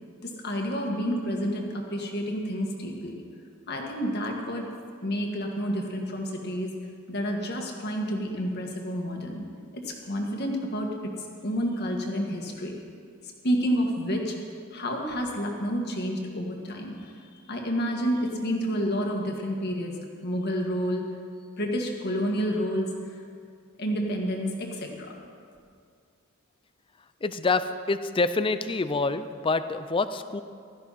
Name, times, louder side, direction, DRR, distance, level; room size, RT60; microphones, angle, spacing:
voice 1, 0.2-3.2 3.7-4.7 5.0-6.7 7.1-9.4 9.7-10.9 11.4-12.7 13.2-14.4 14.7-17.1 17.5-20.0 20.2-21.0 21.6-23.2 23.8-25.1, equal, 50° left, 1 dB, 1.9 m, -29 dB
voice 2, 27.2-30.4, left 3 dB, 25° left, 11 dB, 0.4 m, -26 dB
16.0 x 13.0 x 4.2 m, 2.2 s
head